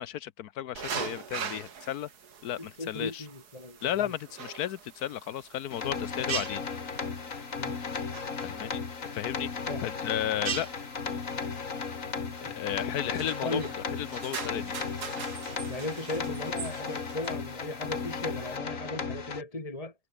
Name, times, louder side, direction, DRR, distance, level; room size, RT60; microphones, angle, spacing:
voice 1, 0.0-2.1 2.4-3.2 3.8-6.6 8.4-8.8 9.1-9.5 9.8-10.7 12.4-13.6 14.0-14.7, left 11 dB, 70° left, 1.2 m, -34 dB
sound 1, 0.8-18.6, right 7 dB, 70° right, 2.2 m, -42 dB
voice 2, 2.6-4.1 7.6-7.8 9.7-9.9 12.2-12.6 13.4-13.7 15.7-19.9, left 2 dB, 20° left, 2.4 m, -37 dB
sound 2, 5.7-19.4, left 5 dB, 50° left, 2.3 m, -35 dB
omnidirectional pair, 1.8 m